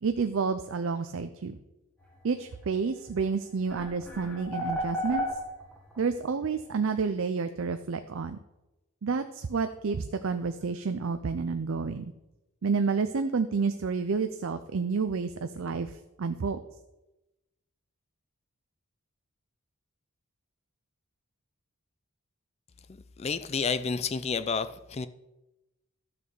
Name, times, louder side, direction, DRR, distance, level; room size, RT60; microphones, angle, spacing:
voice 1, 0.0-1.6 2.2-5.3 6.0-8.4 9.0-12.1 12.6-16.6, right 5 dB, 60° right, 0.5 m, -30 dB
sound 1, 3.1-3.2 3.7-6.0, equal, 5° left, 1.6 m, -32 dB
voice 2, 23.2-25.1, left 5 dB, 30° left, 0.3 m, -30 dB
12.0 x 4.3 x 6.8 m
head